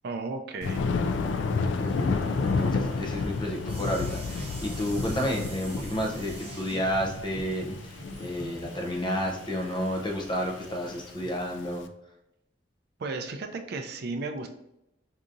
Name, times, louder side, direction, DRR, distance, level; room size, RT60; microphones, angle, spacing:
voice 1, 0.0-0.8 13.0-14.5, right 3 dB, 60° right, 6 dB, 0.4 m, -34 dB
Thunder, 0.6-11.7, left 4 dB, 75° left, 0.3 m, -31 dB
voice 2, 1.8-2.1 2.4-7.7 8.2-11.9, equal, 25° left, 0 dB, 0.6 m, -31 dB
sound 1, 1.9-11.1, right 2 dB, 35° right, 0.8 m, -49 dB
sound 2, 3.3-5.1 5.6-9.1, equal, 75° right, 0.8 m, -45 dB
4.8 x 2.8 x 2.5 m, 0.85 s
head